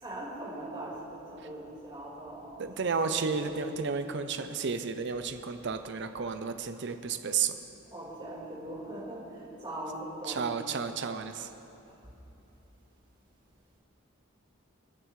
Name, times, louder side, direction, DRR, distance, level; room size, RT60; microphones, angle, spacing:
voice 1, 0.0-3.9 7.9-10.5, right 1 dB, 25° right, -7 dB, 3.8 m, -41 dB
voice 2, 2.6-7.6 10.3-11.5, right 5 dB, 55° right, 8 dB, 0.6 m, -32 dB
29.0 x 10.0 x 3.2 m, 2.9 s
head